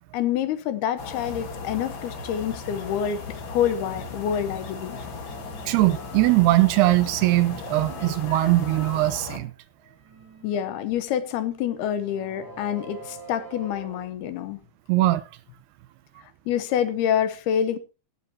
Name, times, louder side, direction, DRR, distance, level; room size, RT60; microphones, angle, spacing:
voice 1, 0.1-5.0 10.4-14.6 16.2-17.8, left 9 dB, 75° left, 2.9 m, -27 dB
sound 1, 1.0-9.4, left 4 dB, 45° left, 1.6 m, -37 dB
sound 2, 3.7-11.0 11.6-14.0, right 3 dB, 50° right, 7.5 m, -48 dB
voice 2, 5.6-9.5 14.9-15.2, right 17 dB, 80° right, 2.7 m, -21 dB
17.0 x 12.0 x 2.8 m
omnidirectional pair, 4.8 m